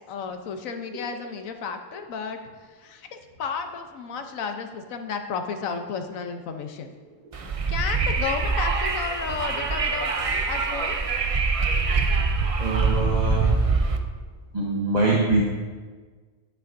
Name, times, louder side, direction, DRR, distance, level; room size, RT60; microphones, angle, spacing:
voice 1, 0.1-2.4 2.8-6.9 7.7-10.1 10.5-11.0, left 5 dB, 80° left, 6 dB, 1.2 m, -32 dB
Wind, 7.3-14.0, right 4 dB, 55° right, 0.4 m, -24 dB
voice 2, 12.6-13.6 14.5-15.4, right 3 dB, 35° right, -3 dB, 1.0 m, -23 dB
11.0 x 8.8 x 2.6 m, 1.5 s
omnidirectional pair, 1.4 m